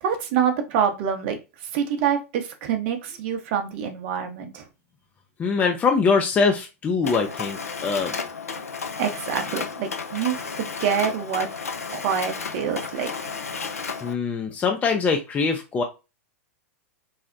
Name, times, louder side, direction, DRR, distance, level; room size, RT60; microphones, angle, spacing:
voice 1, 0.0-1.4 1.7-4.7 9.0-11.5 11.9-13.1, right 8 dB, 50° right, 6 dB, 0.7 m, -26 dB
voice 2, 5.4-8.1 14.0-15.8, left 5 dB, 20° left, 4 dB, 0.4 m, -23 dB
Mechanisms, 7.0-14.1, left 5 dB, 85° left, 0.4 m, -33 dB
3.9 x 2.0 x 2.5 m, 0.27 s
hypercardioid pair, 100°, 8 cm